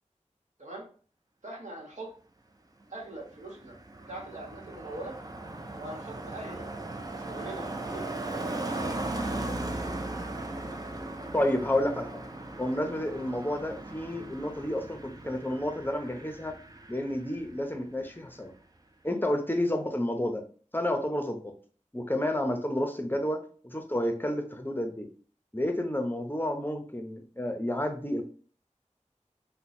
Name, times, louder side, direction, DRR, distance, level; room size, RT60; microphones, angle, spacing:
voice 1, 1.4-2.1 2.9-3.8 4.1-5.1 5.8-6.7 7.2-9.5, right 2 dB, 75° right, -3 dB, 1.1 m, -42 dB
Car passing by, 3.0-17.8 18.0-18.3, right 2 dB, 30° right, 0.5 m, -38 dB
voice 2, 11.3-12.2 12.6-16.6 16.9-18.5 19.0-20.4 20.7-21.5 21.9-25.1 25.5-28.2, left 1 dB, 15° left, 4 dB, 0.7 m, -30 dB
2.9 x 2.2 x 4.1 m, 0.42 s
wide cardioid pair, 40°, 13 cm